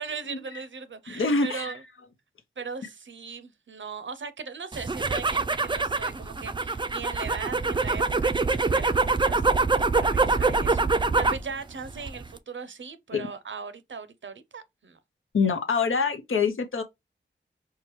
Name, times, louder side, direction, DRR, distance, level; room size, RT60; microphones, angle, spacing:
voice 1, 0.0-1.8 2.6-15.0, right 5 dB, 70° right, 0.6 m, -39 dB
voice 2, 1.1-1.7 13.1-13.3 15.3-16.8, left 4 dB, 90° left, 0.7 m, -25 dB
sound 1, 4.7-11.5 11.8-12.4, right 3 dB, 25° right, 0.4 m, -25 dB
4.6 x 2.1 x 3.0 m
wide cardioid pair, 45°, 20 cm